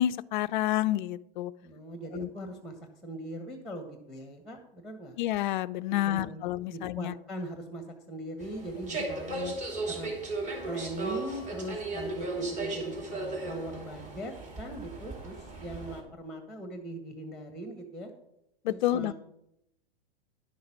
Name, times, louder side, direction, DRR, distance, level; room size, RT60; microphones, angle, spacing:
voice 1, 0.0-1.5 2.1-2.3 5.2-7.1 9.0-9.5 18.6-19.1, left 13 dB, 50° left, 17 dB, 0.5 m, -29 dB
voice 2, 1.6-2.7 3.0-5.2 6.0-9.3 9.9-10.1 10.7-18.1 18.7-19.1, right 1 dB, ahead, 6 dB, 1.3 m, -40 dB
sound 1, 8.4-16.0, right 3 dB, 25° right, 2.6 m, -36 dB
11.0 x 6.4 x 6.0 m, 0.81 s
hypercardioid pair, 105°, 31 cm